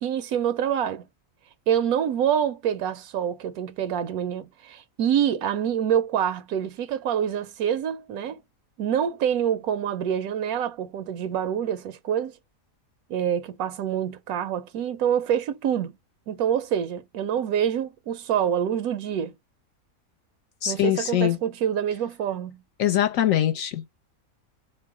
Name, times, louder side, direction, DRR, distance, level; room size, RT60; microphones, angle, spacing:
voice 1, 0.0-1.1 1.7-8.4 8.8-12.3 13.1-15.9 16.3-19.3 20.7-22.6, right 9 dB, 85° right, 1.1 m, -26 dB
voice 2, 20.6-21.4 22.8-23.9, left 12 dB, 75° left, 1.0 m, -23 dB
4.5 x 2.1 x 4.6 m
omnidirectional pair, 1.5 m